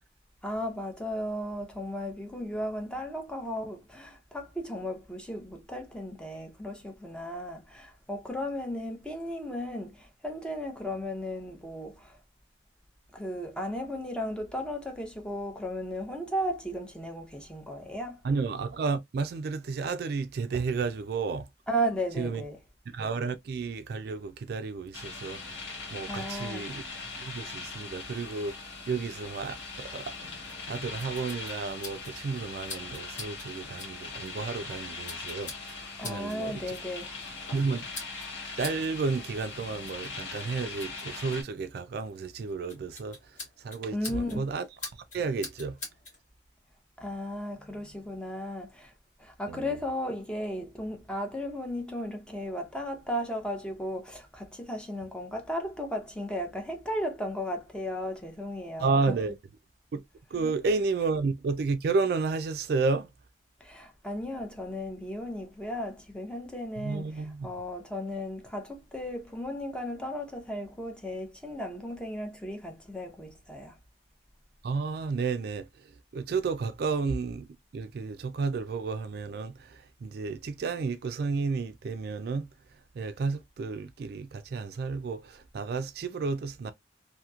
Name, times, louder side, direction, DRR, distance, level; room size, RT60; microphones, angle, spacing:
voice 1, 0.4-12.2 13.1-18.2 21.7-22.6 26.1-26.7 36.0-37.1 43.9-44.5 47.0-48.9 49.2-59.1 60.4-60.5 63.6-73.8, equal, 5° left, 0.7 m, -35 dB
voice 2, 18.2-21.5 22.2-22.4 22.9-26.8 27.2-28.5 28.9-36.6 37.5-37.9 38.6-44.6 45.1-45.8 49.5-49.7 58.8-59.3 59.9-60.0 60.3-63.1 66.8-67.5 74.6-77.5 77.7-82.5 82.9-86.7, right 4 dB, 55° right, 0.3 m, -32 dB
sound 1, 24.9-41.4, left 4 dB, 80° left, 1.2 m, -41 dB
sound 2, 30.5-46.2, left 3 dB, 40° left, 1.4 m, -47 dB
2.9 x 2.7 x 2.3 m
head